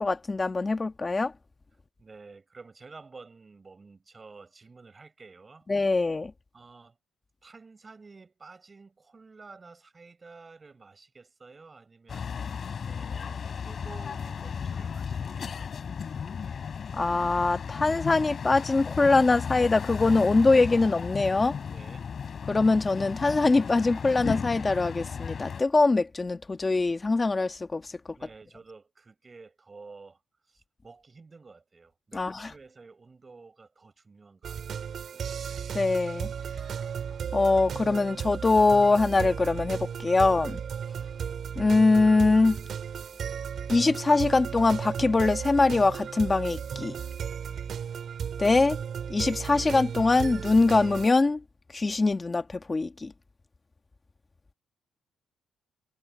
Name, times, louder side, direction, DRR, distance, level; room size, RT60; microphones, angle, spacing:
voice 1, 0.0-1.3 5.7-6.3 16.9-21.6 22.5-28.0 32.1-32.5 35.7-36.3 37.3-40.6 41.5-42.6 43.7-47.0 48.4-48.8 49.1-51.4 51.7-53.1, left 3 dB, 15° left, 1.5 m, -23 dB
voice 2, 2.0-5.7 6.5-7.0 7.4-12.3 12.8-15.7 21.6-22.0 28.2-30.2 30.5-35.2, right 4 dB, 20° right, 4.7 m, -51 dB
sound 1, 12.1-25.6, left 6 dB, 35° left, 4.0 m, -35 dB
sound 2, 34.4-51.1, right 7 dB, 45° right, 3.0 m, -35 dB
cardioid pair, 165°, 0 cm